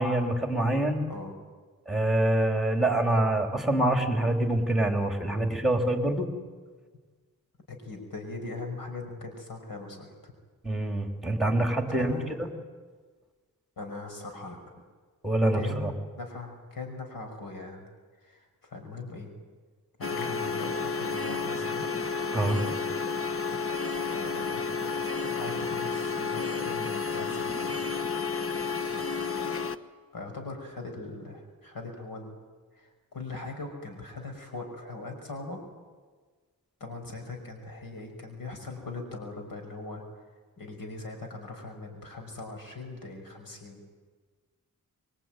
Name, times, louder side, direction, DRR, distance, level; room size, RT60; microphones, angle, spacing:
voice 1, 0.0-1.0 1.9-6.3 10.6-12.2 15.2-15.9 22.3-22.6, right 1 dB, ahead, 4 dB, 3.6 m, -25 dB
voice 2, 7.7-10.3 11.9-12.4 13.8-14.6 15.5-17.8 18.2-19.3 20.0-21.9 22.5-22.8 24.0-24.7 25.3-27.8 30.1-32.4 32.8-35.6 36.8-40.0 40.6-43.9, left 3 dB, 85° left, 4 dB, 6.0 m, -40 dB
sound 1, 20.0-29.7, left 5 dB, 40° left, 1.2 m, -31 dB
25.5 x 23.0 x 9.3 m, 1.4 s
wide cardioid pair, 85°, 34 cm